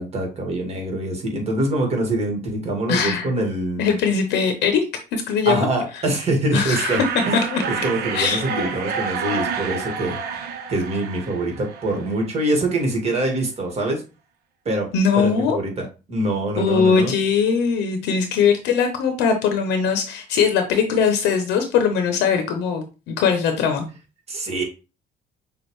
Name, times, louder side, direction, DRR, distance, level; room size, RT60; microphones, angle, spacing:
voice 1, 0.0-3.8 5.5-7.4 7.7-10.2 10.7-14.0 14.7-14.9 15.1-17.1 24.3-24.6, right 2 dB, 40° right, 1 dB, 1.8 m, -24 dB
voice 2, 2.9-3.3 3.8-4.8 5.1-5.7 6.5-7.0 7.3-7.6 8.1-8.4 14.9-15.6 16.6-23.9, left 6 dB, 90° left, 6 dB, 0.8 m, -20 dB
sound 1, 6.7-12.3, right 6 dB, 65° right, 0.9 m, -29 dB
6.2 x 2.4 x 3.1 m, 0.31 s
cardioid pair, 110°, 17 cm